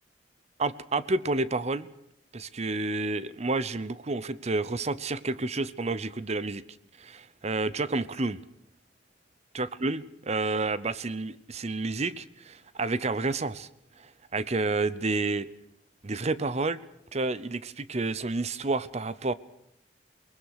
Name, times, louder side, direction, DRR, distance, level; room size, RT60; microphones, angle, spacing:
voice 1, 0.6-1.9 2.3-6.6 7.0-8.4 9.5-13.7 14.3-15.5 16.0-16.8 17.1-19.3, right 3 dB, 35° right, 16 dB, 0.7 m, -30 dB
23.0 x 20.0 x 6.6 m, 0.77 s
head